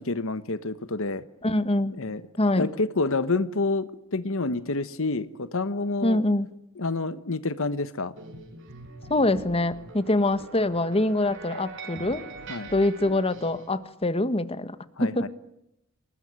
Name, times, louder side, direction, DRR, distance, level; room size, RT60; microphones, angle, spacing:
voice 1, 0.0-1.3 1.9-2.2 2.5-6.2 6.8-8.1 12.5-12.7 15.0-15.3, left 3 dB, 65° left, 13 dB, 1.2 m, -28 dB
voice 2, 1.4-2.0 2.4-2.7 6.0-6.5 9.1-12.2 12.7-15.2, left 2 dB, 25° left, 12 dB, 1.5 m, -24 dB
sound 1, 8.2-13.7, right 3 dB, 60° right, 7.1 m, -43 dB
27.5 x 20.0 x 9.6 m, 0.81 s
head